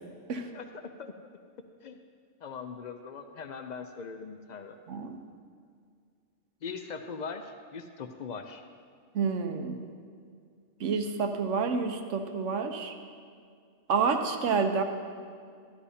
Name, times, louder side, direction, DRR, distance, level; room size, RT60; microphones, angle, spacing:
voice 1, 2.4-4.8 6.6-8.6, left 5 dB, 65° left, 6 dB, 0.4 m, -40 dB
voice 2, 4.9-5.2 9.1-9.8 10.8-13.0 13.9-14.8, right 5 dB, 75° right, 6 dB, 1.1 m, -29 dB
12.5 x 11.5 x 2.8 m, 2.2 s
omnidirectional pair, 1.3 m